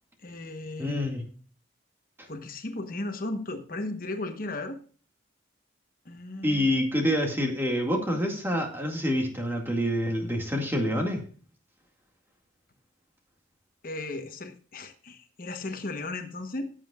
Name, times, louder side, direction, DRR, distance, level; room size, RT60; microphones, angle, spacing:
voice 1, 0.2-1.1 2.3-4.8 6.0-6.7 13.8-16.7, left 2 dB, 50° left, 6 dB, 1.1 m, -35 dB
voice 2, 0.8-1.2 6.4-11.2, equal, 10° right, 2 dB, 2.1 m, -27 dB
15.5 x 7.5 x 2.4 m, 0.42 s
head